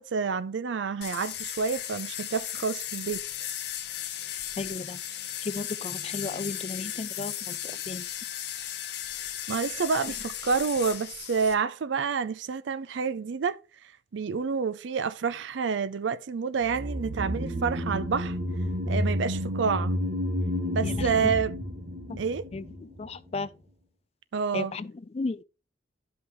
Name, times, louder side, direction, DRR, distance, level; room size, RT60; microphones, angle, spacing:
voice 1, 0.0-3.2 9.5-13.6 14.1-18.4 18.9-19.9 20.7-21.5 22.2-22.5 24.3-24.7, right 5 dB, 80° right, 0.5 m, -28 dB
sound 1, 1.0-11.5, left 11 dB, 65° left, 0.9 m, -36 dB
voice 2, 4.6-5.0 5.4-8.1 20.8-21.3 22.1-22.2 22.5-23.5 24.5-25.4, left 3 dB, 35° left, 0.4 m, -35 dB
sound 2, 16.7-23.1 23.3-23.4, equal, 50° right, 1.6 m, -30 dB
11.5 x 5.6 x 3.0 m
head